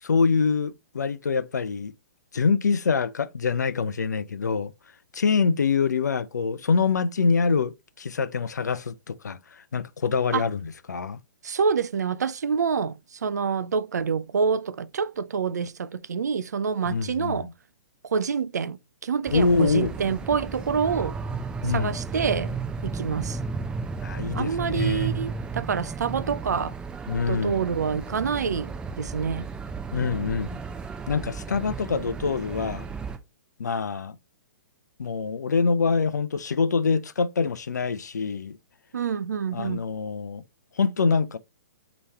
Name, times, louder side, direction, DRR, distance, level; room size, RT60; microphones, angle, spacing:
voice 1, 0.0-1.9 2.3-4.7 5.1-9.4 9.7-11.2 16.8-17.5 19.3-19.9 21.6-21.9 24.0-25.1 27.1-27.6 29.9-30.6 31.1-32.9 33.6-34.2 35.0-38.6 39.5-40.4 40.8-41.4, left 5 dB, 75° left, 0.5 m, -25 dB
voice 2, 11.4-17.5 18.0-21.2 21.6-23.4 24.3-26.7 27.3-29.5 38.9-39.8, right 6 dB, 75° right, 0.4 m, -27 dB
sound 1, 19.3-33.2, right 5 dB, 10° right, 0.6 m, -34 dB
4.7 x 3.0 x 2.9 m
figure-of-eight pair, 120°, 9 cm